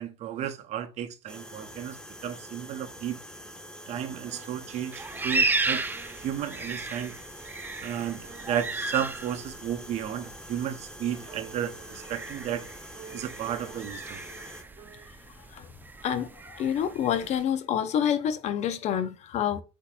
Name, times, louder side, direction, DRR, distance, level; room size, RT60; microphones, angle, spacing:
voice 1, 0.0-2.0 2.2-3.2 3.9-5.8 6.2-7.1 7.8-12.6 13.1-14.2, right 10 dB, 50° right, 0.7 m, -33 dB
sound 1, 1.3-14.6, equal, 5° left, 0.9 m, -45 dB
sound 2, 4.3-15.0, right 6 dB, 30° right, 1.3 m, -53 dB
sound 3, 4.9-17.4, right 3 dB, 10° right, 0.5 m, -35 dB
voice 2, 16.0-19.6, left 9 dB, 45° left, 0.6 m, -28 dB
8.0 x 2.8 x 2.4 m
hypercardioid pair, 75°, 15 cm